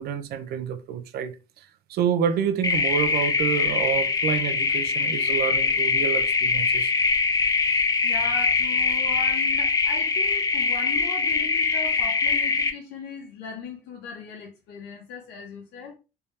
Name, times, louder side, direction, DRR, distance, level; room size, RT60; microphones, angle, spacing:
voice 1, 0.0-6.9, right 8 dB, 70° right, 0.6 m, -28 dB
sound 1, 2.6-12.7, left 4 dB, 20° left, 0.5 m, -23 dB
voice 2, 8.0-15.9, left 5 dB, 90° left, 0.9 m, -38 dB
3.4 x 2.7 x 3.2 m
cardioid pair, 110°, 17 cm